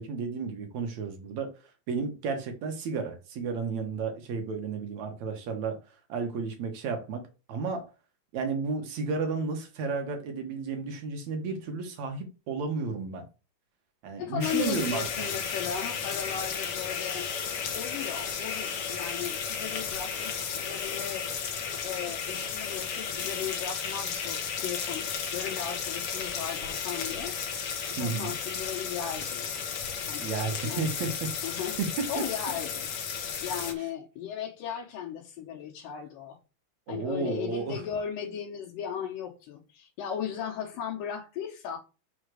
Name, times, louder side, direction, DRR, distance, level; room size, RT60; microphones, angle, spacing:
voice 1, 0.0-1.5 1.9-5.8 6.1-7.2 7.5-7.9 8.3-13.3 14.0-15.3 28.0-28.3 30.2-31.5 31.8-31.9 32.2-32.3 36.9-37.8, right 4 dB, 65° right, 2.5 m, -32 dB
voice 2, 14.2-17.3 17.7-21.3 21.8-27.4 27.9-29.6 30.0-31.1 31.4-31.8 32.1-32.9 33.4-36.4 36.9-41.8, left 9 dB, 85° left, 2.7 m, -36 dB
sound 1, 14.4-33.7, left 6 dB, 60° left, 1.8 m, -34 dB
6.2 x 4.0 x 6.3 m
omnidirectional pair, 3.8 m